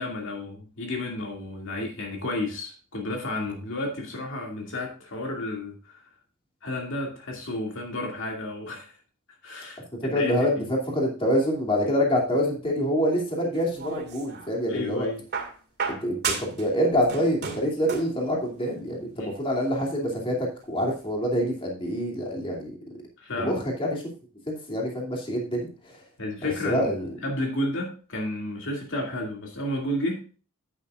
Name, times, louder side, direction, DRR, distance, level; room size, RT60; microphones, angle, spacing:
voice 1, 0.0-6.0 6.6-9.0 9.4-10.7 14.7-15.2 19.2-19.3 23.2-23.6 26.2-26.9 27.2-30.2, left 1 dB, 60° left, 1 dB, 2.4 m, -32 dB
voice 2, 10.0-15.1 15.9-22.7 23.4-24.0 24.5-25.7 26.4-27.1, equal, 25° left, -1 dB, 2.7 m, -26 dB
sound 1, 13.5-14.5 15.3-16.7 16.9-18.2 19.3-19.4, right 5 dB, 50° right, 2.3 m, -32 dB
11.0 x 9.5 x 2.4 m, 0.36 s
head